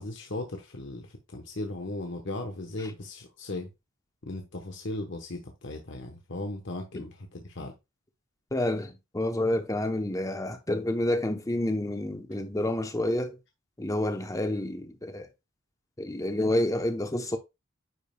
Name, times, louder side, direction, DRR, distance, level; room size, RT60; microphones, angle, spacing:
voice 1, 0.0-3.7 4.2-7.7, left 2 dB, 65° left, 1.1 m, -37 dB
voice 2, 8.5-13.4 13.8-15.3 16.0-17.4, left 1 dB, 15° left, 0.8 m, -29 dB
9.7 x 5.3 x 2.3 m
head